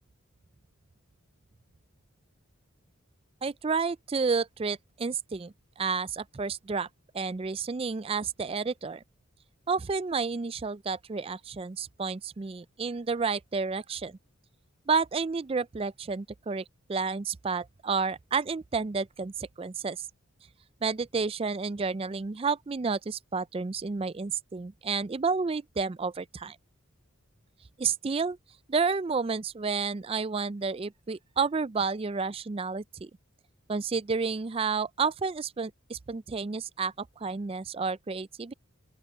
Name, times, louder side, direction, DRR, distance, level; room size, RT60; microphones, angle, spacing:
voice 1, 3.4-6.9 7.1-9.0 9.7-14.2 14.9-20.1 20.8-26.6 27.8-28.4 28.7-33.1 33.7-38.5, right 5 dB, 25° right, 0.3 m, -30 dB
open air
head